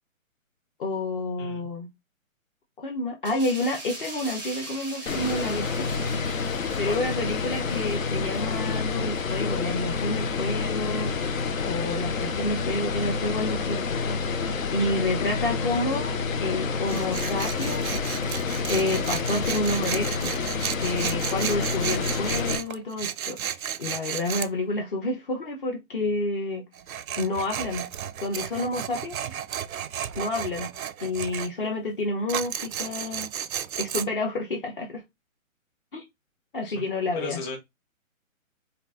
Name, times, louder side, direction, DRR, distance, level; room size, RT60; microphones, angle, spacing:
voice 1, 0.8-1.9 2.8-5.9 6.8-11.1 11.6-14.0 14.7-18.1 18.6-20.3 20.8-23.4 23.8-26.6 27.2-27.9 28.2-29.2 30.2-30.7 31.0-33.3 33.8-35.0 35.9-36.0 36.5-37.4, left 2 dB, 40° left, 0.8 m, -29 dB
sound 1, 3.2-10.4 10.8-11.0, right 1 dB, ahead, 0.5 m, -42 dB
sound 2, 5.1-22.6, left 4 dB, 75° left, 0.9 m, -28 dB
Tools, 16.9-24.5 26.7-31.5 32.3-34.0, right 9 dB, 90° right, 0.6 m, -33 dB
voice 2, 37.1-37.6, left 2 dB, 15° left, 1.1 m, -36 dB
4.0 x 2.5 x 3.4 m
hypercardioid pair, 160°, 41 cm